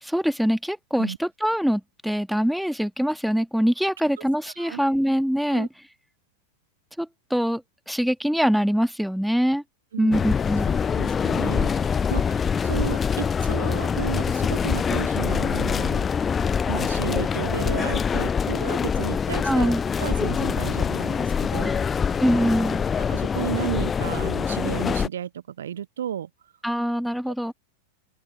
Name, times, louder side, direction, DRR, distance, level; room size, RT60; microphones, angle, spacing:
voice 1, 0.0-5.7 7.0-7.6 7.9-9.6 10.0-10.7 19.4-19.8 21.6-21.8 22.2-22.8 26.6-27.5, equal, ahead, 1.6 m, -23 dB
sound 1, 10.1-25.1, left 6 dB, 20° left, 0.4 m, -24 dB
voice 2, 10.9-16.1 16.7-21.8 23.1-26.3 27.3-27.5, right 9 dB, 65° right, 0.6 m, -33 dB
open air
figure-of-eight pair, 90°, 0 cm